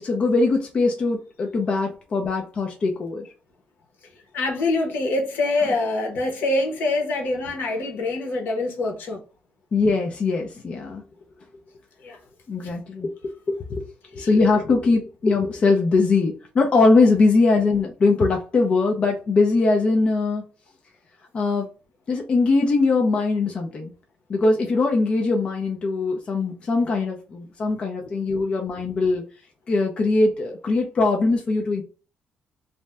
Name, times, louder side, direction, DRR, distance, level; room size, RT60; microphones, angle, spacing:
voice 1, 0.0-3.3 9.7-11.0 12.5-13.1 13.7-13.8 14.1-20.4 21.3-21.7 22.1-23.9 24.3-29.2 29.7-31.8, left 3 dB, 35° left, 0.5 m, -21 dB
voice 2, 4.3-9.2 12.0-12.2 14.2-14.3, left 2 dB, 75° left, 1.0 m, -25 dB
2.6 x 2.1 x 3.2 m
cardioid pair, 170°, 3 cm